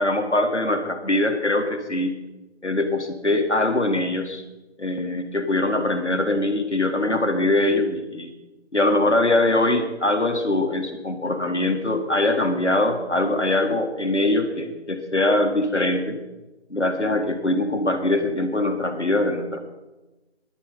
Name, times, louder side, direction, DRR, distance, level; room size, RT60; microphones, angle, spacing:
voice 1, 0.0-2.2 2.6-4.4 4.8-8.3 8.7-16.2 16.7-19.6, left 2 dB, 75° left, 5 dB, 2.2 m, -22 dB
14.0 x 11.5 x 5.2 m, 1.1 s
figure-of-eight pair, 165°, 34 cm